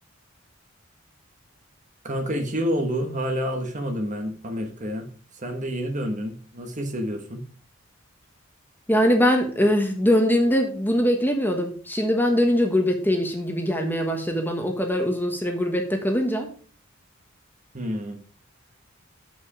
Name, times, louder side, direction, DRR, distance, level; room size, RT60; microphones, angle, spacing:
voice 1, 2.0-5.1 5.3-7.5 17.7-18.2, equal, 40° right, 4 dB, 1.3 m, -28 dB
voice 2, 8.9-16.5, equal, 10° left, 3 dB, 1.3 m, -22 dB
7.6 x 5.8 x 4.9 m, 0.42 s
head